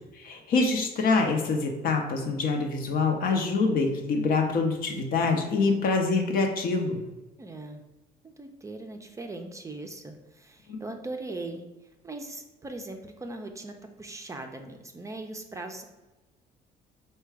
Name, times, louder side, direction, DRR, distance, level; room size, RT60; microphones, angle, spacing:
voice 1, 0.2-7.0 10.7-10.8, left 4 dB, 60° left, 4 dB, 0.7 m, -25 dB
voice 2, 7.4-7.8 8.2-11.7 12.0-15.9, right 2 dB, 20° right, 4 dB, 0.4 m, -39 dB
4.6 x 2.2 x 4.6 m, 1.1 s
cardioid pair, 110°, 17 cm